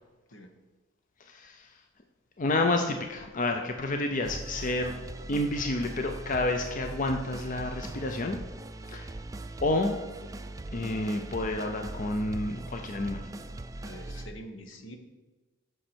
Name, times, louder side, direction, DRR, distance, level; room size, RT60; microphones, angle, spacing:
voice 1, 1.3-1.7 2.4-4.9 5.3-8.4 8.9-9.1 9.6-10.0 10.7-13.2, left 2 dB, 45° left, 4 dB, 0.6 m, -29 dB
sound 1, 4.2-14.3, right 2 dB, 20° right, 0.4 m, -40 dB
voice 2, 13.8-15.0, equal, 75° left, 5 dB, 1.1 m, -45 dB
9.4 x 6.4 x 4.5 m, 1.2 s
head